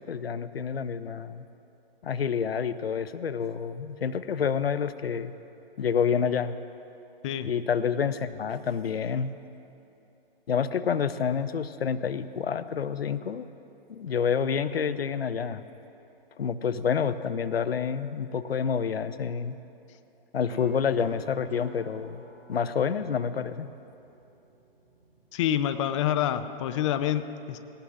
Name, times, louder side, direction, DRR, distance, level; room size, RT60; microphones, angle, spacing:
voice 1, 0.0-1.5 2.0-5.3 5.8-6.6 7.4-9.3 10.5-13.5 13.9-15.7 16.4-19.6 20.3-22.2 22.5-23.7, left 7 dB, 85° left, 14 dB, 0.6 m, -28 dB
sound 1, 20.5-25.5, right 2 dB, 5° right, 2.2 m, -49 dB
voice 2, 25.3-27.6, left 10 dB, 30° left, 11 dB, 0.5 m, -27 dB
19.0 x 17.0 x 2.4 m, 2.8 s
hypercardioid pair, 130°, 30 cm